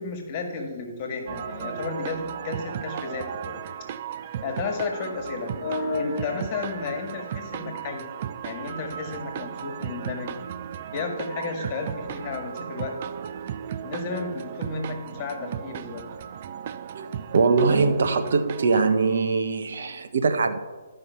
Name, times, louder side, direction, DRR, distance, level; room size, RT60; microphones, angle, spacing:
voice 1, 0.0-3.6 4.4-8.1 8.4-10.4 10.9-13.0 13.8-16.0, left 4 dB, 35° left, 3 dB, 1.9 m, -32 dB
sound 1, 1.3-18.9, right 9 dB, 45° right, 0.5 m, -36 dB
voice 2, 17.3-20.6, right 4 dB, 60° right, 7 dB, 1.1 m, -22 dB
12.5 x 5.6 x 5.7 m, 1.3 s
figure-of-eight pair, 135°, 0 cm